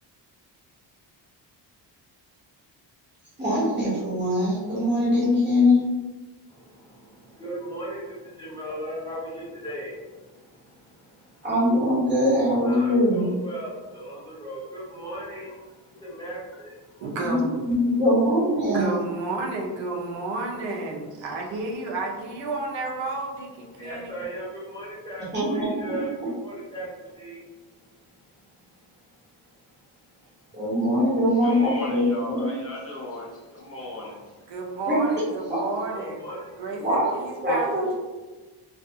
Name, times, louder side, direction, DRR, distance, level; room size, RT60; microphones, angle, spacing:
voice 1, 3.4-5.8 11.4-13.3 17.2-18.9 25.3-25.9 30.5-32.5 34.9-35.0 35.5-35.6 36.8-37.0 37.4-38.0, left 1 dB, 25° right, -8 dB, 1.3 m, -22 dB
voice 2, 6.5-11.5 12.6-17.1 23.8-27.4 28.2-28.9 30.2-30.6 33.5-34.5 35.9-36.6, right 1 dB, 10° left, -8 dB, 1.1 m, -38 dB
voice 3, 17.0-17.6 18.6-24.1 34.5-36.2 36.6-38.0, right 2 dB, 85° right, -1 dB, 0.7 m, -31 dB
voice 4, 31.4-34.2, left 2 dB, 35° left, -5 dB, 0.5 m, -37 dB
2.4 x 2.3 x 2.6 m, 1.2 s
cardioid pair, 110°, 44 cm